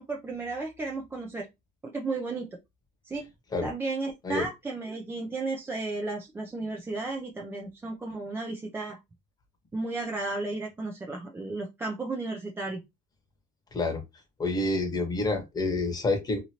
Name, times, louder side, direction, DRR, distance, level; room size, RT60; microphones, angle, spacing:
voice 1, 0.0-1.5 1.8-2.5 3.1-3.3 3.6-9.0 9.7-12.8, right 3 dB, 10° right, 0 dB, 0.4 m, -34 dB
voice 2, 14.4-16.4, left 2 dB, 20° left, 4 dB, 1.0 m, -28 dB
2.9 x 2.6 x 2.8 m, 0.21 s
supercardioid pair, 125°, 21 cm